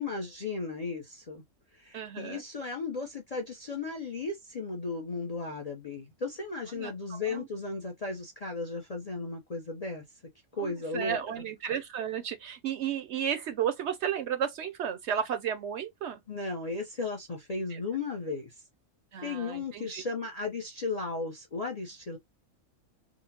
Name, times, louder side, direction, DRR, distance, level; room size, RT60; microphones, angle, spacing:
voice 1, 0.0-1.4 1.7-10.0 10.5-11.2 16.3-18.5 19.2-22.2, left 3 dB, 45° left, 0.5 m, -35 dB
voice 2, 1.9-2.4 6.7-7.5 10.6-16.2 17.7-17.8 19.1-20.0, right 8 dB, 65° right, 0.7 m, -33 dB
3.7 x 2.0 x 2.8 m
omnidirectional pair, 1.4 m